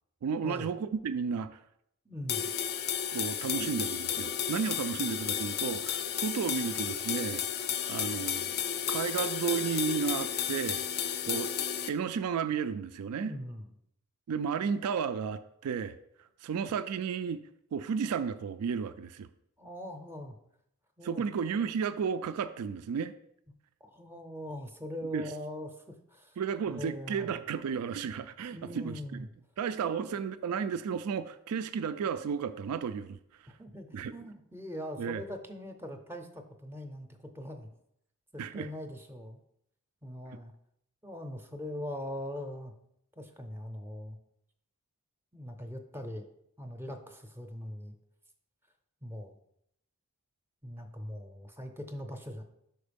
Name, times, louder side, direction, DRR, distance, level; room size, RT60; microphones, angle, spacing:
voice 1, 0.2-1.6 3.1-7.4 7.9-8.6 8.9-11.5 11.9-13.3 14.3-16.0 16.4-17.4 17.7-19.3 21.0-23.1 25.1-25.3 26.4-29.3 29.6-33.2 33.9-34.1 35.0-35.2 38.4-38.7, right 6 dB, 85° right, 12 dB, 0.4 m, -33 dB
voice 2, 2.1-2.5 13.2-13.7 19.6-20.4 21.0-21.2 23.8-25.8 26.1-26.4 26.7-27.4 28.5-29.3 29.9-30.1 33.5-37.7 38.3-39.4 40.0-40.5 41.0-42.7 43.2-44.2 45.3-46.3 46.6-48.0 49.0-49.4 50.6-52.4, equal, 10° right, 6 dB, 0.6 m, -41 dB
sound 1, 2.3-11.9, left 8 dB, 45° left, 0.4 m, -33 dB
5.2 x 4.4 x 5.1 m, 0.74 s
head